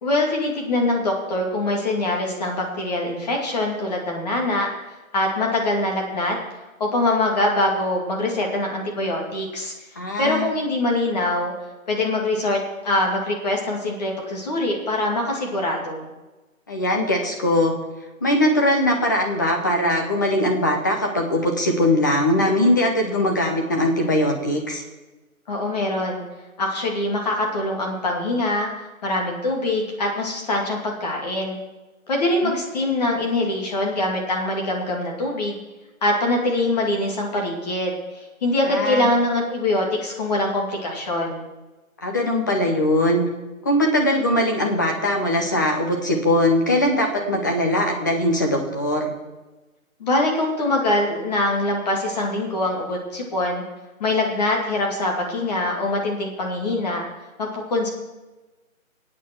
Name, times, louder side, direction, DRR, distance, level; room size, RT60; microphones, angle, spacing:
voice 1, 0.0-4.7 5.1-6.4 6.8-9.7 10.2-11.5 11.9-16.1 25.5-26.2 26.6-28.7 29.0-31.6 32.1-35.6 36.0-41.5 50.0-53.6 54.0-57.0 57.4-57.9, left 2 dB, 30° left, 0 dB, 2.5 m, -23 dB
voice 2, 10.0-10.5 16.7-17.7 18.2-24.8 32.4-32.5 38.6-39.1 42.0-43.2 43.6-49.1, left 1 dB, 15° left, 2 dB, 0.8 m, -21 dB
23.0 x 8.9 x 4.5 m, 1.1 s
hypercardioid pair, 165°, 42 cm